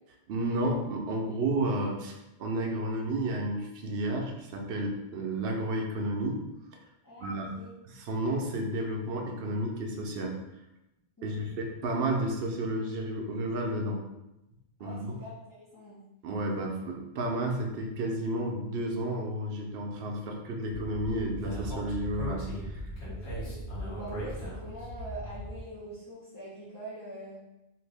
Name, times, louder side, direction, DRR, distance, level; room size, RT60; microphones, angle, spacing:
voice 1, 0.3-6.4 7.2-7.5 7.8-10.4 11.2-14.0 14.8-15.2 16.2-22.8, right 1 dB, 65° right, 1 dB, 0.8 m, -32 dB
voice 2, 7.0-7.7 11.2-11.5 14.8-16.0 23.0-23.6 23.8-27.4, right 1 dB, 20° left, -9 dB, 0.7 m, -44 dB
Speech, 20.7-25.6, equal, 70° left, 1.3 m, -38 dB
2.7 x 2.6 x 3.4 m, 0.93 s
omnidirectional pair, 1.1 m